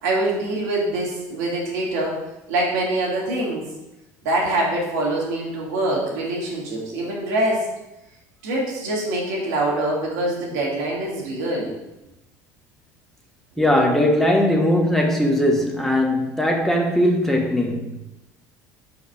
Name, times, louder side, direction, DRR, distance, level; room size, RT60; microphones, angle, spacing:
voice 1, 0.0-2.2 2.5-3.6 4.2-7.7 8.4-11.7 13.6-13.7, right 1 dB, 85° right, -4 dB, 2.1 m, -24 dB
voice 2, 13.6-18.0, left 1 dB, 5° left, 1 dB, 1.1 m, -19 dB
4.9 x 4.0 x 5.7 m, 0.95 s
supercardioid pair, 80°, 8 cm